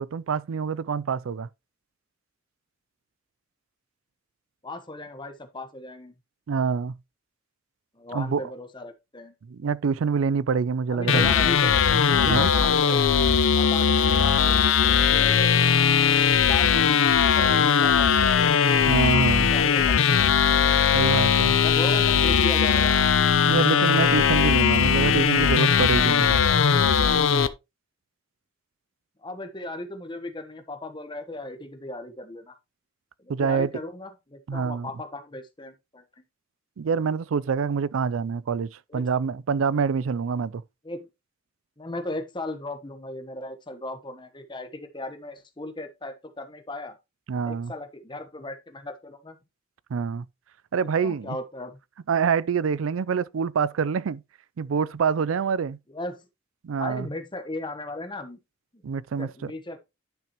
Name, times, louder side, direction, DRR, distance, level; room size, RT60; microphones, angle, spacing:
voice 1, 0.0-1.5 6.5-6.9 8.1-8.5 9.5-11.3 12.2-12.5 18.9-19.5 20.9-21.6 23.5-26.4 33.3-33.7 34.5-34.9 36.8-40.6 47.3-47.7 49.9-50.3 50.7-51.4 52.1-54.2 54.6-55.8 56.6-57.1 58.8-59.5, right 6 dB, 90° right, 0.4 m, -26 dB
voice 2, 4.6-6.1 7.9-9.3 10.9-11.7 12.1-14.7 15.1-15.7 16.4-17.1 17.3-18.5 19.1-20.2 21.6-23.0 29.2-32.5 33.2-36.0 38.9-39.1 40.8-41.0 41.8-47.0 47.4-49.4 51.0-51.8 55.9-56.2 56.7-58.4 58.7-58.8 59.2-59.8, left 2 dB, 25° left, 1.2 m, -36 dB
sound 1, 11.1-27.5, left 7 dB, 85° left, 0.6 m, -20 dB
10.0 x 6.0 x 3.0 m
head